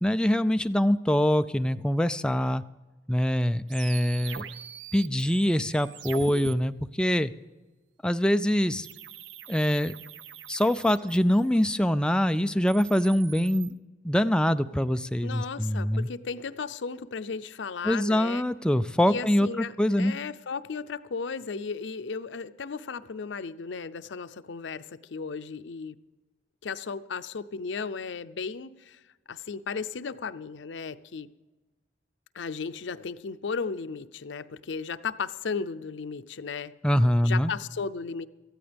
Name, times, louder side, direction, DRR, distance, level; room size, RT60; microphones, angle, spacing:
voice 1, 0.0-2.6 3.1-4.4 4.9-7.3 8.0-8.9 9.5-9.9 10.5-13.7 14.0-16.1 17.8-19.5 19.8-20.1 36.8-37.5, equal, 5° left, 11 dB, 0.3 m, -24 dB
sound 1, 3.7-6.5 8.8-11.6 12.5-13.7, right 8 dB, 85° right, 0.6 m, -43 dB
voice 2, 15.2-18.5 19.1-26.0 26.6-29.0 29.3-31.3 32.3-36.7 37.2-38.3, left 5 dB, 85° left, 12 dB, 0.6 m, -35 dB
18.0 x 13.5 x 3.4 m, 1.2 s
head